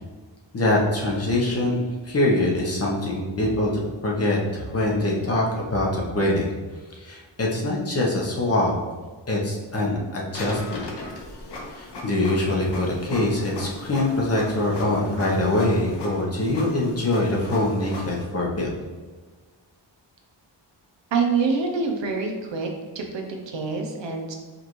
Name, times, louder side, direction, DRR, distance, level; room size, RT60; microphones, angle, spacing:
voice 1, 0.5-6.5 7.0-8.7 9.3-10.9 11.7-18.7, left 1 dB, 30° left, -3 dB, 0.8 m, -24 dB
Printer, 10.3-18.2, left 2 dB, 60° left, 0.9 m, -37 dB
voice 2, 21.1-22.7 22.9-24.3, right 4 dB, 70° right, 2 dB, 0.7 m, -26 dB
5.1 x 2.5 x 3.0 m, 1.4 s
wide cardioid pair, 130°, 45 cm